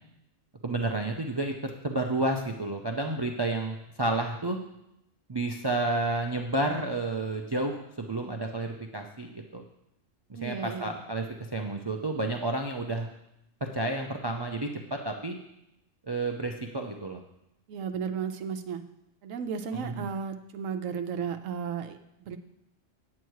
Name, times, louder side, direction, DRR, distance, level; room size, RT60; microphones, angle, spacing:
voice 1, 0.6-4.6 5.3-9.6 10.3-11.3 11.5-13.1 13.7-15.4 16.1-17.2 19.7-20.1, right 2 dB, 30° right, 3 dB, 0.5 m, -31 dB
voice 2, 10.3-10.9 17.7-18.8 19.2-22.0 22.3-22.4, right 6 dB, 90° right, 7 dB, 1.1 m, -34 dB
9.2 x 8.4 x 4.7 m, 0.84 s
omnidirectional pair, 1.3 m